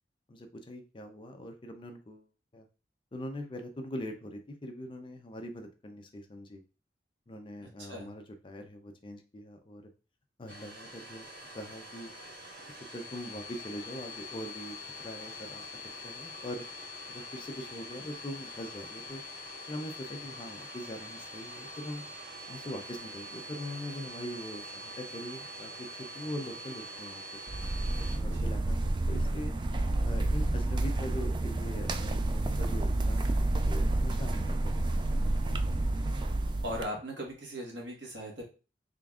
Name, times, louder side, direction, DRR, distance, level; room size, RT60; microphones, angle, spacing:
voice 1, 0.3-2.3 2.5-2.7 3.1-6.6 7.3-9.8 10.4-11.2 11.5-12.1 12.9-15.7 16.0-16.6 17.1-19.2 19.7-22.0 22.5-25.7 26.1-27.2 27.9-29.5 30.0-32.2 32.5-35.0, equal, 30° left, 6 dB, 0.5 m, -42 dB
voice 2, 7.6-8.1 28.1-28.5 36.6-38.4, equal, 90° right, -1 dB, 1.4 m, -39 dB
Domestic sounds home sounds, 10.5-28.2, left 1 dB, 55° right, 2.0 m, -44 dB
sound 1, 27.5-36.8, right 2 dB, 25° right, 0.3 m, -29 dB
3.8 x 3.4 x 2.4 m, 0.34 s
head